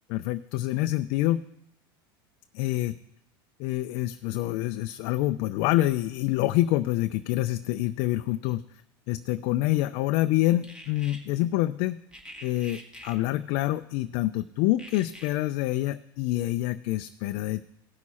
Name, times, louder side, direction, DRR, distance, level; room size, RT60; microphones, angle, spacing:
voice 1, 0.1-1.4 2.5-3.0 3.6-8.6 9.1-12.0 12.4-17.7, left 16 dB, 60° left, 10 dB, 0.4 m, -26 dB
sound 1, 10.6-11.2 12.1-13.2 14.8-15.3, equal, 5° right, 1.9 m, -45 dB
17.0 x 6.1 x 4.3 m, 0.78 s
hypercardioid pair, 95°, 12 cm